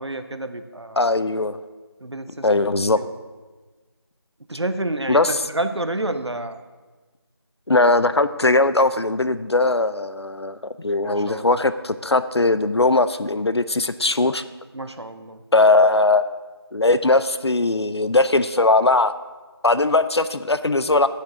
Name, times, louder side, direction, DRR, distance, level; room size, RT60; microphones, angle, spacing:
voice 1, 0.0-1.0 2.0-3.1 4.5-6.6 11.0-11.5 14.7-15.4, right 1 dB, 90° right, 9 dB, 0.8 m, -29 dB
voice 2, 1.0-1.6 2.4-3.0 5.1-5.4 7.7-14.4 15.5-16.2 16.7-19.1 19.6-21.1, left 2 dB, 75° left, 13 dB, 0.5 m, -19 dB
9.3 x 6.6 x 6.0 m, 1.3 s
figure-of-eight pair, 170°, 14 cm